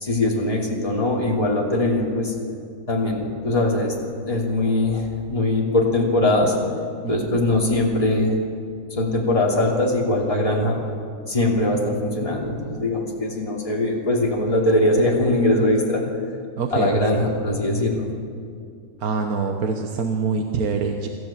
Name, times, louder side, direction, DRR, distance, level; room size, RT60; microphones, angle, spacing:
voice 1, 0.0-2.3 2.9-3.9 4.3-6.6 7.1-8.3 8.9-10.8 11.3-16.0 16.7-18.0, left 1 dB, 25° left, -2 dB, 3.0 m, -21 dB
voice 2, 7.0-7.4 16.6-17.2 19.0-21.1, right 5 dB, 80° right, 4 dB, 1.6 m, -25 dB
26.5 x 14.5 x 7.5 m, 2.3 s
omnidirectional pair, 1.5 m